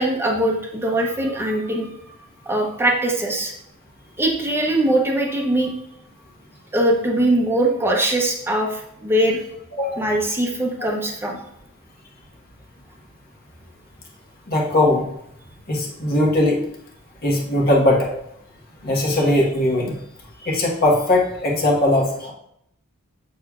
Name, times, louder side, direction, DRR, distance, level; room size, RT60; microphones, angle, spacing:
voice 1, 0.0-1.9 2.5-3.5 4.2-5.7 6.7-9.4 10.0-11.4, right 1 dB, 10° right, 0 dB, 0.8 m, -21 dB
voice 2, 9.7-10.0 14.5-15.1 15.7-16.6 17.2-18.1 18.8-19.9 20.4-22.3, left 1 dB, 45° left, -2 dB, 1.3 m, -19 dB
7.1 x 6.6 x 2.4 m, 0.77 s
head